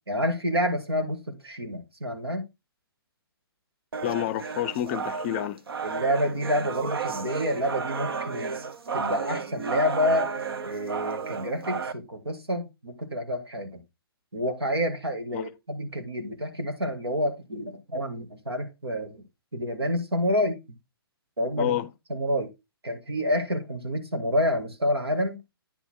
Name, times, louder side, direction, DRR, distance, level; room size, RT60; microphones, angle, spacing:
voice 1, 0.1-2.5 5.8-8.5 8.9-10.3 10.6-13.8 14.3-19.2 19.5-20.6 21.4-21.8 22.1-22.5 22.8-25.4, equal, 90° right, 2.1 m, -28 dB
sound 1, 3.9-11.9, right 5 dB, 70° right, 0.9 m, -32 dB
voice 2, 4.0-5.6 15.3-15.5 21.6-21.9, left 13 dB, 30° left, 0.5 m, -29 dB
9.7 x 4.1 x 4.6 m
hypercardioid pair, 135°, 13 cm